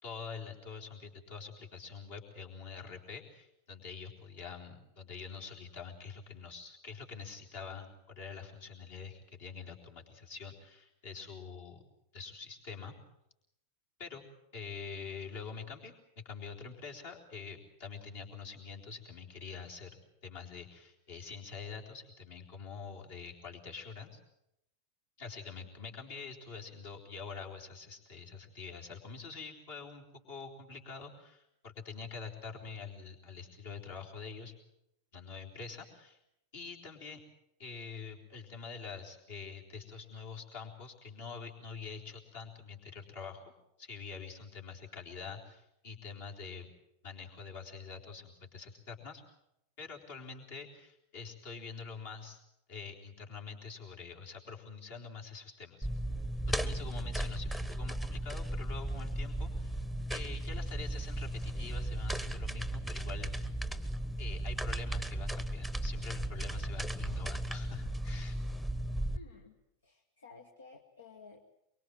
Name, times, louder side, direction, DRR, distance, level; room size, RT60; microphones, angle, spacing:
voice 1, 0.0-11.8 12.1-13.0 14.0-14.2 14.5-24.2 25.2-34.5 35.1-36.2 36.5-37.2 37.6-43.4 43.8-46.7 47.0-49.2 49.8-52.4 52.7-55.9 56.6-59.8 60.1-63.5 64.2-68.4, left 5 dB, 55° left, 1 dB, 3.9 m, -46 dB
sound 1, 55.8-69.2, right 1 dB, 5° left, 1.1 m, -36 dB
voice 2, 69.1-71.4, left 4 dB, 70° left, 5 dB, 1.5 m, -55 dB
23.5 x 23.5 x 7.7 m, 0.80 s
figure-of-eight pair, 90°, 0 cm